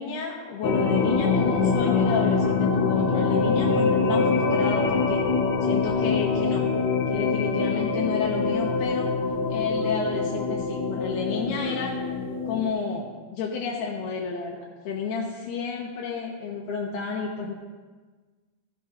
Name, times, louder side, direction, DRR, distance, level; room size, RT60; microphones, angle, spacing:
voice 1, 0.0-5.2 5.6-6.6 7.1-9.1 9.5-12.0 12.5-13.1 13.3-14.6 14.8-17.5, left 5 dB, 80° left, -3 dB, 3.0 m, -30 dB
sound 1, 0.6-12.7, left 4 dB, 65° left, 1.9 m, -24 dB
14.5 x 12.5 x 2.5 m, 1.4 s
omnidirectional pair, 4.6 m